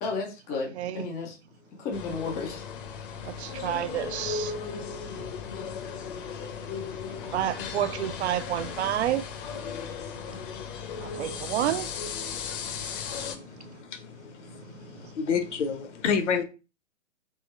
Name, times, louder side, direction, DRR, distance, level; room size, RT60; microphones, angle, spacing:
voice 1, 0.0-1.4 1.8-2.6, left 4 dB, 10° left, 0.3 m, -33 dB
sound 1, 1.9-13.4, left 6 dB, 45° left, 0.8 m, -36 dB
voice 2, 3.3-4.5 7.3-9.2 11.0-11.9, right 12 dB, 65° right, 0.5 m, -29 dB
voice 3, 15.1-16.4, left 6 dB, 65° left, 1.0 m, -26 dB
3.7 x 2.9 x 4.1 m
hypercardioid pair, 135°, 37 cm